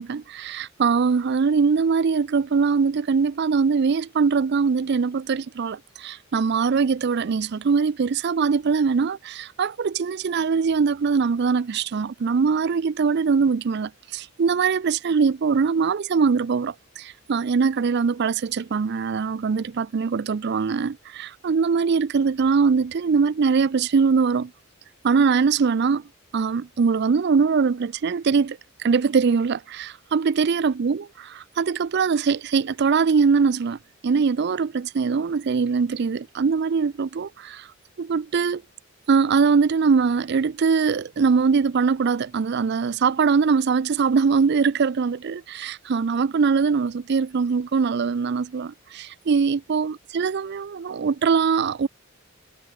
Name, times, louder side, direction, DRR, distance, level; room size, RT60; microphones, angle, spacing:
voice 1, 0.0-24.5 25.0-26.0 26.3-37.7 38.0-38.6 39.1-51.9, right 5 dB, 50° right, 0.4 m, -22 dB
head